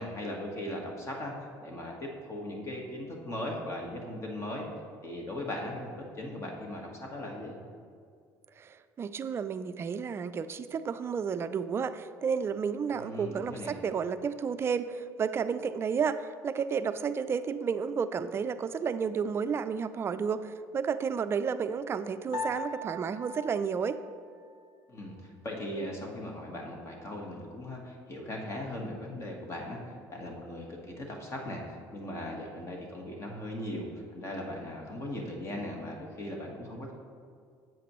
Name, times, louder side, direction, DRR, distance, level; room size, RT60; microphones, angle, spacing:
voice 1, 0.0-4.6 5.0-5.9 6.2-7.6 12.9-13.8 24.9-36.9, left 1 dB, 35° left, 0 dB, 1.4 m, -38 dB
voice 2, 8.6-24.0, right 6 dB, 30° right, 11 dB, 0.4 m, -32 dB
Piano, 22.3-24.9, left 2 dB, 65° left, 1.5 m, -40 dB
10.0 x 7.7 x 3.1 m, 2.2 s
cardioid pair, 110°, 8 cm